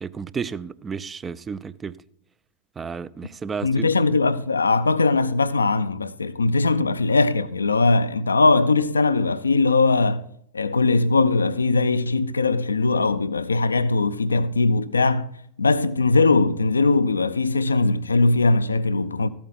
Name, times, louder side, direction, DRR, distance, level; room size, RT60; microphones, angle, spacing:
voice 1, 0.0-2.0 2.8-3.9, right 6 dB, 20° right, 0.4 m, -32 dB
voice 2, 3.6-10.2 10.5-15.3 15.6-19.3, left 3 dB, 75° left, 0.5 m, -20 dB
13.5 x 8.6 x 4.0 m
figure-of-eight pair, 90°, 0 cm